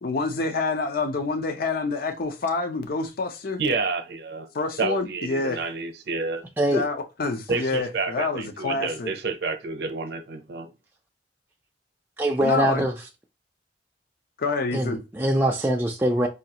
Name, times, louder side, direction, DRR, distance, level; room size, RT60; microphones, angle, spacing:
voice 1, 0.0-3.6 4.5-5.6 6.7-9.1 12.4-12.9 14.4-15.0, left 3 dB, 55° left, 0.5 m, -27 dB
voice 2, 3.6-4.5 4.8-6.4 7.5-10.7, right 4 dB, 65° right, 0.7 m, -29 dB
voice 3, 12.2-12.9 14.7-16.3, right 1 dB, 10° right, 0.4 m, -23 dB
5.0 x 2.3 x 2.8 m
head